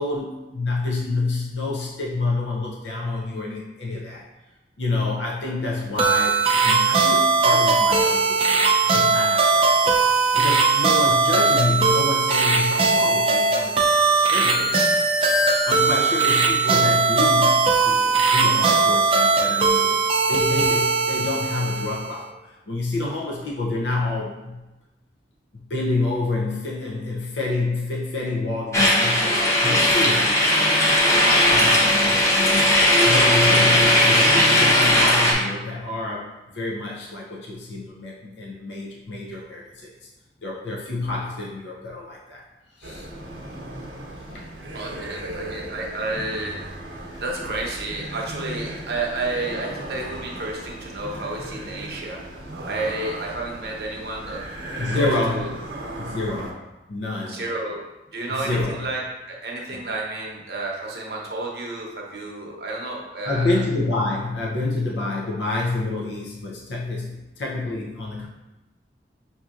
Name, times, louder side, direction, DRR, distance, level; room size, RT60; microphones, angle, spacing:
voice 1, 0.0-4.3 4.8-10.0 10.3-13.8 14.1-20.0 20.3-24.6 25.5-30.7 31.5-32.3 33.0-40.1 40.4-42.4 42.8-43.1 44.3-44.5 46.2-46.3 47.1-47.5 54.8-55.7 56.0-56.6 56.9-57.4 58.3-58.9 59.8-59.9 63.3-68.3, left 2 dB, 85° left, -2 dB, 0.6 m, -28 dB
sound 1, 6.0-22.2, right 4 dB, 30° right, 0.4 m, -19 dB
sound 2, 28.7-35.3, left 1 dB, 15° left, 0.6 m, -17 dB
sound 3, 42.8-56.5, right 1 dB, 90° right, 0.7 m, -36 dB
voice 2, 44.7-46.6 46.9-52.2 52.6-54.5 54.8-55.6 57.3-57.8 58.1-63.6, right 2 dB, 65° right, -1 dB, 0.8 m, -31 dB
6.0 x 2.7 x 2.4 m, 1.0 s
head